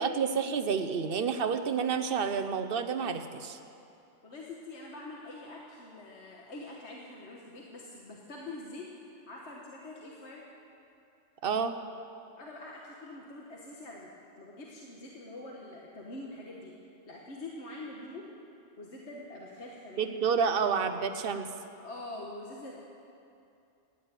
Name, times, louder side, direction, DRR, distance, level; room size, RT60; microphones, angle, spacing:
voice 1, 0.0-3.6 11.4-11.7 20.0-21.5, right 6 dB, 55° right, 9 dB, 1.0 m, -29 dB
voice 2, 4.2-8.9 9.3-10.4 12.4-14.1 14.4-16.7 17.1-18.3 18.8-20.2 21.8-22.7, left 2 dB, 65° left, -2 dB, 1.7 m, -44 dB
15.5 x 9.8 x 9.0 m, 2.7 s
omnidirectional pair, 1.2 m